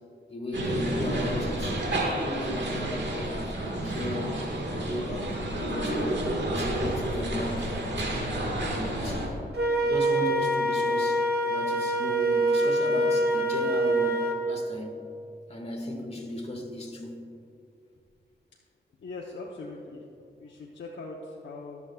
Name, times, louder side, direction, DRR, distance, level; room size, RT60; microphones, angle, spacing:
voice 1, 0.3-4.4 4.7-6.2 6.5-8.2 8.6-9.3 9.8-14.9 15.5-17.2, left 1 dB, 35° left, 1 dB, 1.9 m, -35 dB
sound 1, 0.5-9.3, right 1 dB, 80° right, 1.7 m, -30 dB
Wind instrument woodwind instrument, 9.6-14.4, right 1 dB, 60° right, 1.3 m, -25 dB
voice 2, 19.0-20.1 20.4-21.8, left 3 dB, 90° left, -3 dB, 0.9 m, -41 dB
21.0 x 7.1 x 2.4 m, 2.6 s
cardioid pair, 60°, 18 cm